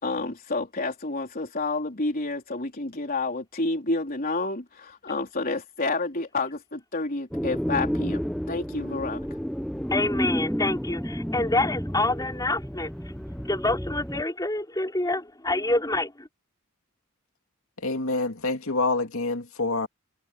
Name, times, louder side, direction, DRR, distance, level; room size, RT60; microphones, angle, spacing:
voice 1, 0.0-8.2 8.5-9.2, left 3 dB, 40° left, 4.0 m, -29 dB
sound 1, 7.3-14.2, equal, ahead, 0.9 m, -31 dB
voice 2, 9.9-12.9 13.5-16.3, left 2 dB, 15° left, 4.7 m, -27 dB
voice 3, 17.8-19.9, left 3 dB, 65° left, 2.5 m, -27 dB
head